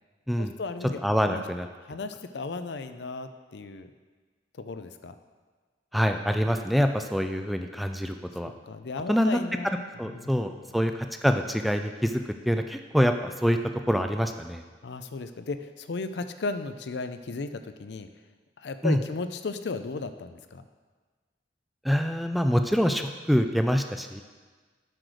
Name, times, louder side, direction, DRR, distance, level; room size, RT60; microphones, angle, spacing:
voice 1, 0.4-1.0 1.3-1.4 1.9-3.9 4.6-5.1 8.7-9.7 10.1-10.3 14.8-18.1 18.6-20.6, left 3 dB, 70° left, 9 dB, 0.5 m, -35 dB
voice 2, 1.0-1.7 5.9-8.5 9.1-9.4 9.6-13.6 13.9-14.6 18.8-19.0 21.8-24.2, equal, ahead, 6 dB, 0.3 m, -25 dB
7.7 x 5.0 x 6.2 m, 1.4 s
head